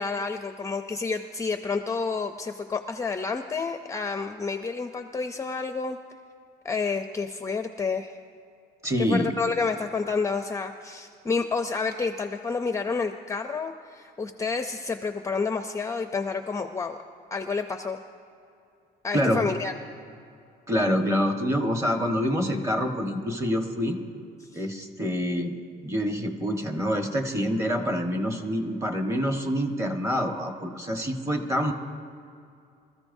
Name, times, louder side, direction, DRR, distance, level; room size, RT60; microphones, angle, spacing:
voice 1, 0.0-6.0 6.6-8.1 9.0-17.0 17.3-18.0 19.0-19.7 24.4-24.6, left 4 dB, 20° left, 7 dB, 0.5 m, -29 dB
voice 2, 8.8-9.3 19.1-19.5 20.7-24.0 24.5-25.5 25.8-31.7, equal, 15° right, 4 dB, 1.3 m, -26 dB
25.5 x 14.0 x 2.7 m, 2.5 s
cardioid pair, 130°, 17 cm